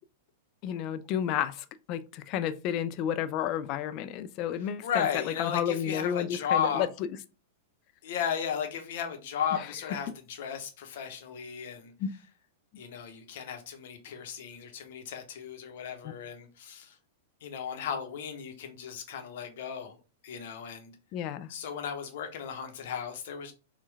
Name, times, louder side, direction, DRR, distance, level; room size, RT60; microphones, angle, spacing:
voice 1, 0.6-6.9 12.0-12.1 21.1-21.5, left 10 dB, 40° left, 0.3 m, -31 dB
voice 2, 4.8-6.9 8.0-11.9 12.8-17.0 17.4-20.0 20.2-20.9 21.5-23.5, left 7 dB, 55° left, 0.8 m, -35 dB
4.3 x 2.3 x 3.3 m
figure-of-eight pair, 100°, 0 cm